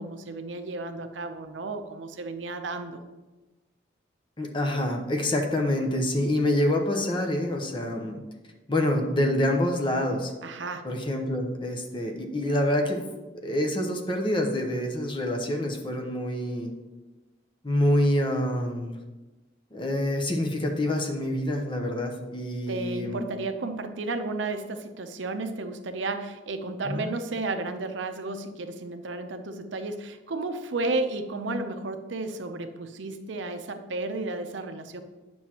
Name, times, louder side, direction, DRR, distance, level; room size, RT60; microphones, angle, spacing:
voice 1, 0.0-3.0 10.4-10.9 22.7-35.0, right 2 dB, 80° right, 8 dB, 0.6 m, -33 dB
voice 2, 4.4-8.2 8.7-10.3 10.8-13.0 13.4-16.7 17.6-19.0 19.7-23.2 26.8-27.1, left 1 dB, 25° left, 3 dB, 0.8 m, -26 dB
9.1 x 6.1 x 2.9 m, 1.2 s
head